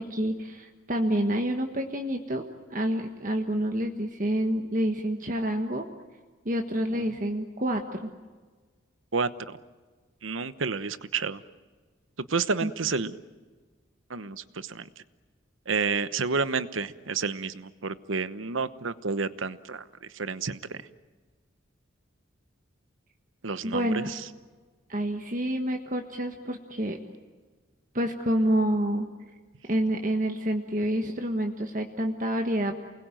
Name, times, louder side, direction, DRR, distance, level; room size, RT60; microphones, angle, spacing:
voice 1, 0.0-2.4 2.7-5.9 6.4-8.1 12.6-12.7 23.6-24.1 24.9-27.0 27.9-29.1 29.7-32.8, right 1 dB, 40° right, 3 dB, 1.4 m, -28 dB
voice 2, 9.1-9.6 10.2-11.4 12.2-13.1 14.1-14.9 15.7-20.8 23.4-24.2, right 4 dB, 85° right, 13 dB, 1.0 m, -30 dB
28.5 x 21.0 x 9.1 m, 1.4 s
head